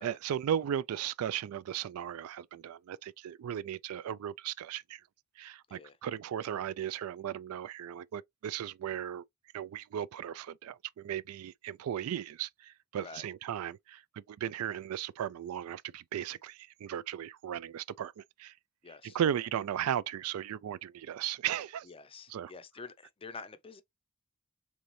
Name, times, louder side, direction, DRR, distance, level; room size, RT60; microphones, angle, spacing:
voice 1, 0.0-5.0 5.4-9.2 9.5-12.5 12.9-14.0 14.3-18.5 19.1-21.9 22.3-22.5, right 10 dB, 85° right, 0.3 m, -36 dB
voice 2, 18.8-19.2 21.8-23.8, left 4 dB, 25° left, 0.5 m, -48 dB
3.9 x 3.2 x 3.1 m
head